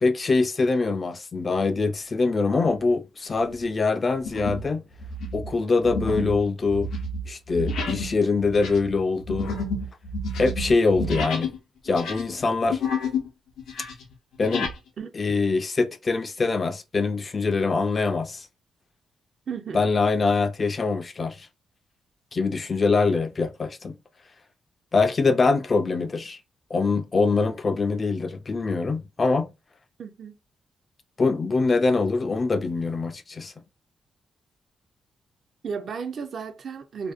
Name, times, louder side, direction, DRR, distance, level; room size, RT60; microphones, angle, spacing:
voice 1, 0.0-4.9 5.3-6.9 7.3-9.6 10.4-11.5 11.8-12.8 14.4-14.7 15.2-18.5 19.7-21.5 22.3-24.0 24.9-26.4 26.7-29.5 31.2-33.5, left 4 dB, 35° left, 0.3 m, -24 dB
sound 1, 2.6-2.9 3.4-3.6 4.2-4.7 5.0-11.6 11.9-13.3 13.6-14.8, left 2 dB, 85° left, 0.5 m, -30 dB
voice 2, 15.0-15.4 19.5-19.8 30.0-30.4 35.6-37.1, right 6 dB, 55° right, 0.4 m, -34 dB
2.5 x 2.0 x 2.3 m
cardioid pair, 105°, 0 cm